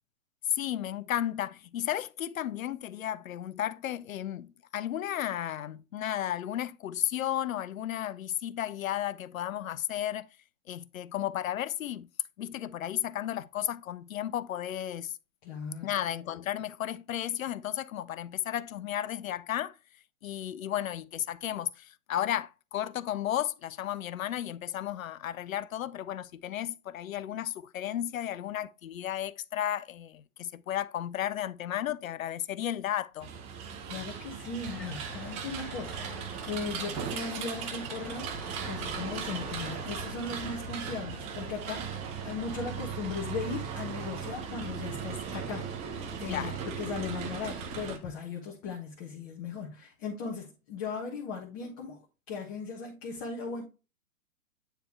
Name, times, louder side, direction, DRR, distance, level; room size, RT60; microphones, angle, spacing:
voice 1, 0.5-10.3 10.7-12.1 12.4-15.2 15.8-19.7 20.2-33.3 46.3-46.6, left 11 dB, 65° left, 0.6 m, -33 dB
voice 2, 15.4-15.9 33.9-38.3 38.6-46.5 46.8-52.0 52.3-53.6, left 5 dB, 30° left, 1.4 m, -38 dB
sound 1, 33.2-48.0, right 6 dB, 15° right, 0.6 m, -38 dB
sound 2, 33.6-41.7, left 1 dB, 5° left, 1.6 m, -48 dB
9.3 x 3.4 x 3.1 m
figure-of-eight pair, 125°, 44 cm